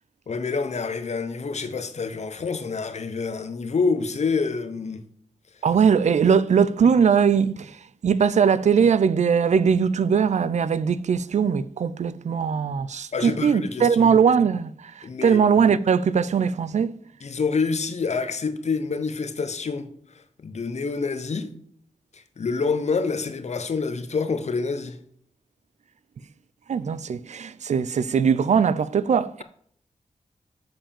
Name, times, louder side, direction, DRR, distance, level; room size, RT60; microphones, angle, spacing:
voice 1, 0.3-5.0 13.1-13.9 15.0-15.4 17.2-19.9 20.4-21.5 22.1-25.0, left 4 dB, 60° left, 1.0 m, -27 dB
voice 2, 5.6-16.9 26.7-29.4, right 6 dB, 65° right, 0.5 m, -20 dB
7.4 x 5.0 x 7.1 m
cardioid pair, 55°, 13 cm